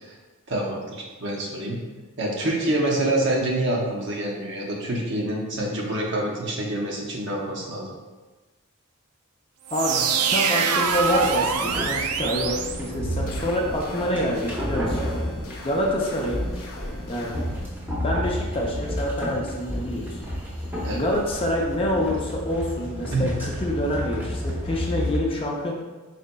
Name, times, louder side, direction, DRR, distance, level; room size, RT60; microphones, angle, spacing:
voice 1, 0.5-1.8 2.2-7.9 20.8-21.0 23.1-23.3, right 1 dB, 55° right, -2 dB, 0.7 m, -26 dB
voice 2, 9.7-15.0 15.6-16.5 17.1-17.3 17.9-20.2 20.9-25.7, equal, 25° left, -1 dB, 0.5 m, -27 dB
sound 1, 9.7-13.5, right 6 dB, 85° right, 0.4 m, -25 dB
sound 2, 10.9-25.2, left 1 dB, 10° right, 0.7 m, -31 dB
sound 3, 13.3-17.6, left 1 dB, 75° left, 0.6 m, -39 dB
4.1 x 3.7 x 2.2 m, 1.2 s
head